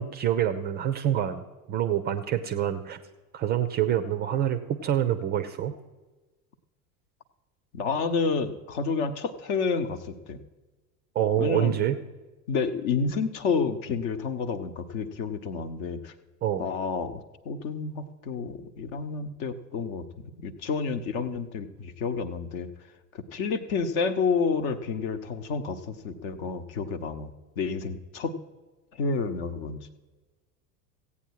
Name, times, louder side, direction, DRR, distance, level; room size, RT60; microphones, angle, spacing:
voice 1, 0.0-3.0 3.3-5.7 11.1-12.0 16.4-16.6, right 10 dB, 20° right, 10 dB, 0.5 m, -26 dB
voice 2, 7.7-10.4 11.4-11.8 12.5-16.1 16.6-22.7 23.1-27.3 27.6-28.3 29.0-29.9, left 5 dB, 40° left, 11 dB, 1.0 m, -30 dB
15.5 x 8.5 x 4.7 m, 1.2 s
figure-of-eight pair, 80°, 47 cm